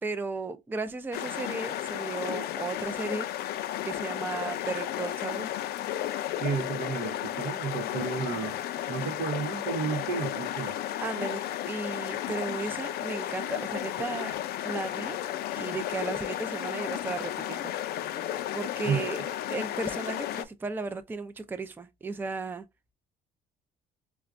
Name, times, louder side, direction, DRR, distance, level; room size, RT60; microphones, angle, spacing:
voice 1, 0.0-3.3 3.8-5.5 11.0-14.3 14.6-15.2 15.5-18.0 18.5-19.2 19.5-22.6, right 4 dB, 10° right, 0.4 m, -35 dB
sound 1, 1.1-20.4, left 12 dB, 70° left, 0.4 m, -33 dB
voice 2, 6.4-8.6 8.9-10.8 18.8-19.0, right 6 dB, 75° right, 0.9 m, -32 dB
4.8 x 2.2 x 2.4 m
cardioid pair, 110°, 17 cm